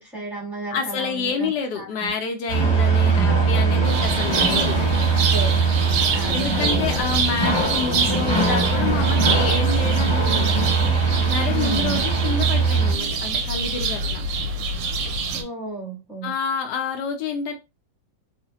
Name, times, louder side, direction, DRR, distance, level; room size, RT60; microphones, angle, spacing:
voice 1, 0.0-1.5 1.8-2.1 5.1-5.6 6.1-6.8 11.5-12.1 15.3-16.3, right 4 dB, ahead, 0.8 m, -32 dB
voice 2, 0.7-4.8 6.3-10.5 11.3-14.2 16.2-17.5, left 5 dB, 75° left, 1.0 m, -28 dB
sound 1, 2.5-12.9, right 4 dB, 30° left, 0.8 m, -21 dB
sound 2, 3.8-15.4, right 5 dB, 75° right, 1.2 m, -26 dB
3.1 x 2.1 x 2.7 m
omnidirectional pair, 2.1 m